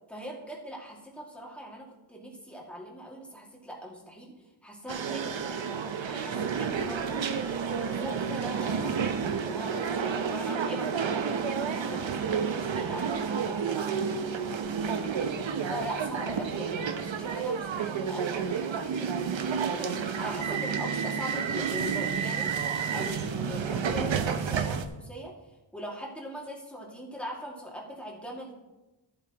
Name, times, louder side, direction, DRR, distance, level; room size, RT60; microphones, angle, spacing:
voice 1, 0.1-5.4 6.1-11.4 11.8-13.9 15.7-19.2 19.7-25.3 25.7-28.5, equal, 5° left, -3 dB, 2.1 m, -41 dB
sound 1, 4.9-24.9, right 6 dB, 85° right, 0.8 m, -30 dB
14.0 x 8.1 x 3.0 m, 1.1 s
wide cardioid pair, 105°, 45 cm